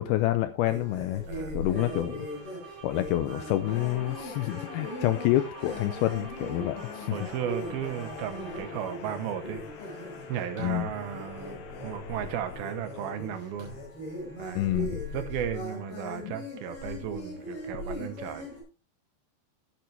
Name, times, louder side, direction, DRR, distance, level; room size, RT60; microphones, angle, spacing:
voice 1, 0.0-1.3 1.5-2.3 2.8-7.2 10.6-10.9 14.6-15.0 16.2-16.3, left 14 dB, 90° left, 11 dB, 2.1 m, -28 dB
sound 1, 0.6-18.6, left 1 dB, 30° left, 5.6 m, -39 dB
voice 2, 1.3-1.6 7.1-9.6 10.3-13.8 14.4-14.8 15.1-18.5, right 10 dB, 70° right, 10 dB, 2.4 m, -35 dB
sound 2, 1.7-9.2, right 6 dB, 30° right, 4.3 m, -48 dB
sound 3, 3.6-14.0, left 7 dB, 70° left, 3.3 m, -45 dB
14.5 x 9.1 x 3.3 m, 0.30 s
omnidirectional pair, 5.2 m